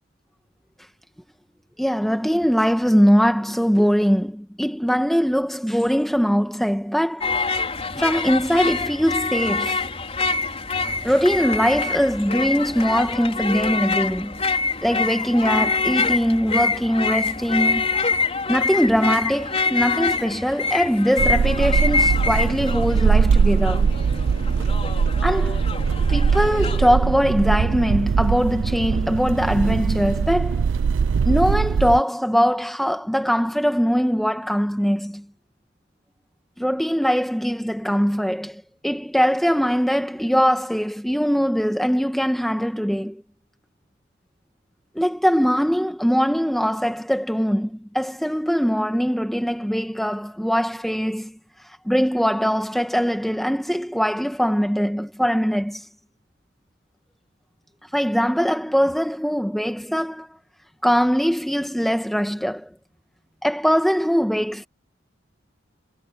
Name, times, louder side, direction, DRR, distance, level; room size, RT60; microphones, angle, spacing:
voice 1, 1.8-7.3 7.9-9.9 11.0-14.4 14.8-17.9 18.5-23.9 25.2-25.6 26.1-30.6 31.2-35.2 36.6-43.2 44.9-51.4 51.8-55.8 57.9-60.4 60.8-62.7 63.4-64.7, equal, ahead, 1.7 m, -21 dB
sound 1, 7.2-26.9, left 4 dB, 30° left, 4.6 m, -25 dB
sound 2, 21.2-32.0, right 5 dB, 75° right, 0.4 m, -21 dB
head